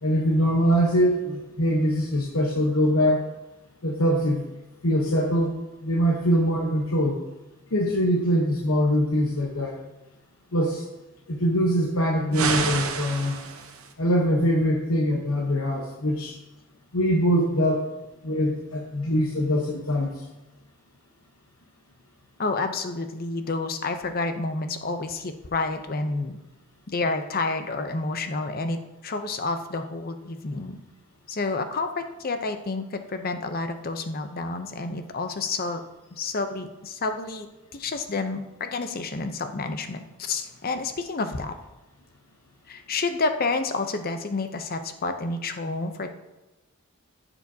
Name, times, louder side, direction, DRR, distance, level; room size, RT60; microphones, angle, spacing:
voice 1, 0.0-3.2 3.8-4.4 4.8-5.5 5.8-7.2 7.7-9.8 10.5-10.8 11.3-13.4 14.0-16.3 16.9-17.8 18.2-20.1, equal, 90° left, 0 dB, 1.1 m, -23 dB
sound 1, 12.3-13.9, right 5 dB, 85° right, 1.0 m, -29 dB
voice 2, 22.4-26.4 26.9-30.8 31.3-35.8 36.1-41.6 42.7-46.1, left 3 dB, 45° left, 8 dB, 0.7 m, -29 dB
15.0 x 7.1 x 2.8 m, 1.0 s
head